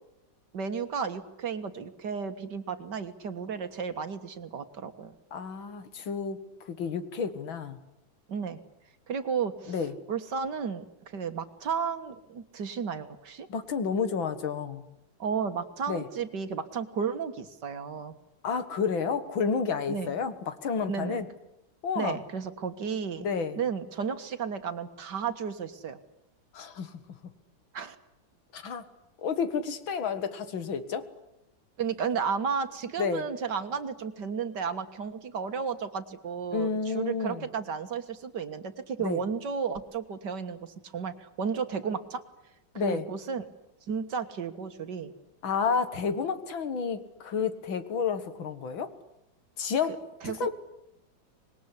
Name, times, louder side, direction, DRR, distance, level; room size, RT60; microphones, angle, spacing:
voice 1, 0.5-5.1 8.3-8.6 9.1-9.7 10.1-13.5 15.2-18.2 19.9-20.1 20.9-21.2 22.0-23.3 23.6-26.0 27.7-28.0 31.8-42.2 42.7-43.5 43.9-45.1 50.2-50.5, right 6 dB, 60° right, 9 dB, 2.1 m, -33 dB
voice 2, 5.3-6.4 6.6-7.8 9.7-9.9 13.5-14.8 15.9-16.0 18.4-21.3 21.8-22.2 23.2-23.6 26.5-26.9 28.5-28.8 29.2-31.0 33.0-33.3 36.5-37.5 39.0-39.2 42.8-43.1 45.4-48.9 49.6-50.5, left 6 dB, 80° left, 11 dB, 2.4 m, -30 dB
26.0 x 20.5 x 9.9 m, 0.87 s
omnidirectional pair, 2.1 m